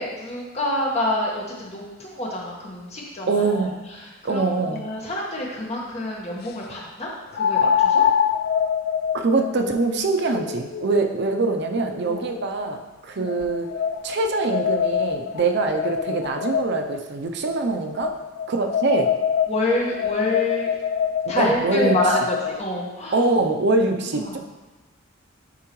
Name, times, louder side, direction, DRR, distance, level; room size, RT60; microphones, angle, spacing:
voice 1, 0.0-3.6 3.9-8.0 12.1-12.3 13.2-13.4 19.5-20.7 21.3-23.2 23.6-23.8 24.1-24.4, left 1 dB, 35° left, -3 dB, 1.3 m, -27 dB
voice 2, 3.3-3.8 4.2-4.8 9.1-13.7 14.0-18.2 18.5-19.1 21.3-22.0 23.1-24.4, right 3 dB, 55° right, 4 dB, 0.6 m, -23 dB
sound 1, 4.8-4.9 7.3-12.5 13.3-17.0 18.0-22.6, left 8 dB, 50° left, 0.3 m, -25 dB
9.5 x 3.7 x 3.1 m, 1.2 s
head